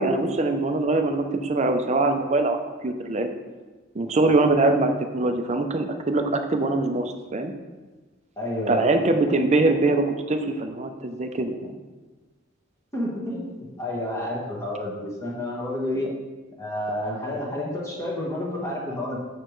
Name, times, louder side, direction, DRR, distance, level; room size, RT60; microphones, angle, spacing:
voice 1, 0.0-3.4 3.9-7.5 8.7-11.8, right 2 dB, 35° right, 6 dB, 0.5 m, -23 dB
voice 2, 8.4-8.8 12.9-13.4 13.8-16.1 16.6-19.2, left 1 dB, 15° left, -4 dB, 1.4 m, -29 dB
6.6 x 6.5 x 3.1 m, 1.3 s
head